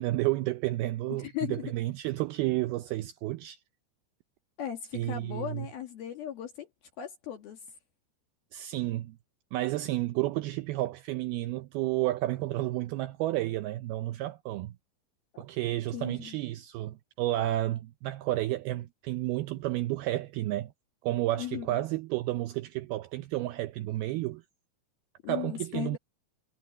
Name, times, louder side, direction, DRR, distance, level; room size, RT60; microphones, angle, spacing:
voice 1, 0.0-3.6 4.9-5.7 8.5-9.2 9.5-14.7 15.4-20.7 21.0-24.4 25.3-26.0, right 16 dB, 80° right, 2.2 m, -31 dB
voice 2, 1.1-1.7 4.6-6.7 7.0-7.6 15.3-15.4 15.9-16.4 21.4-21.8 25.2-26.0, left 10 dB, 60° left, 3.6 m, -37 dB
omnidirectional pair, 5.1 m